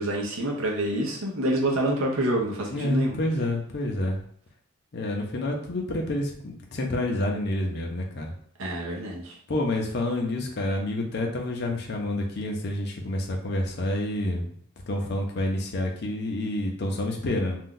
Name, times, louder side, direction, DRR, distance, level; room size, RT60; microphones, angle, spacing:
voice 1, 0.0-3.1 8.6-9.4, right 1 dB, 70° right, -1 dB, 0.8 m, -27 dB
voice 2, 2.7-4.2 4.9-8.3 9.5-14.5 14.9-17.6, left 1 dB, 50° left, 1 dB, 0.5 m, -28 dB
2.6 x 2.2 x 3.7 m, 0.64 s
head